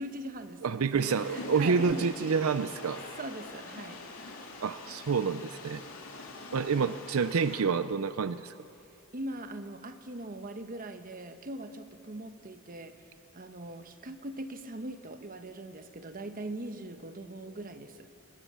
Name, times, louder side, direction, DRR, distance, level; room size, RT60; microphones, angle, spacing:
voice 1, 0.0-2.4 3.2-4.0 6.7-7.0 9.1-13.1 13.3-18.1, right 1 dB, 40° right, 8 dB, 1.1 m, -41 dB
voice 2, 0.6-3.0 4.6-5.8 6.5-8.5, right 5 dB, 80° right, 13 dB, 0.5 m, -28 dB
sound 1, 1.0-7.6, left 2 dB, 65° left, 3.0 m, -44 dB
23.5 x 20.5 x 7.0 m, 2.7 s
head